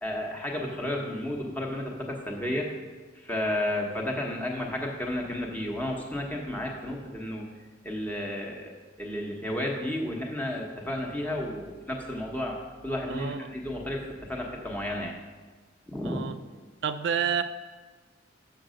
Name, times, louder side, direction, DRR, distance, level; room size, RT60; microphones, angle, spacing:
voice 1, 0.0-2.7 3.2-7.4 7.8-8.7 9.0-15.1 15.9-16.2, left 1 dB, 10° left, -1 dB, 1.1 m, -32 dB
voice 2, 13.1-13.5 16.0-16.4 16.8-17.4, right 7 dB, 65° right, 10 dB, 0.3 m, -29 dB
6.5 x 6.2 x 6.4 m, 1.4 s
head